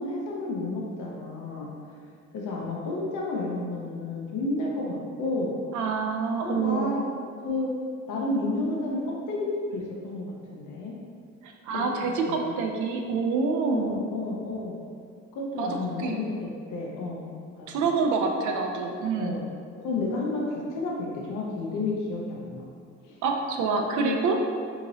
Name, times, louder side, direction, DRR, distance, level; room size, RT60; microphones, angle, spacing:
voice 1, 0.0-1.7 2.3-5.5 6.4-7.0 7.4-7.7 8.1-9.4 9.7-10.9 11.7-11.8 12.3-12.5 13.7-14.8 15.3-17.3 17.6-17.7 19.2-19.5 19.8-22.7 23.0-23.2 24.0-24.2, left 2 dB, 85° left, -3 dB, 0.7 m, -31 dB
voice 2, 5.7-7.0 11.4-14.0 15.6-16.2 17.7-19.4 23.2-24.4, right 4 dB, 75° right, 2 dB, 0.5 m, -27 dB
2.8 x 2.6 x 2.9 m, 2.2 s
cardioid pair, 90°, 30 cm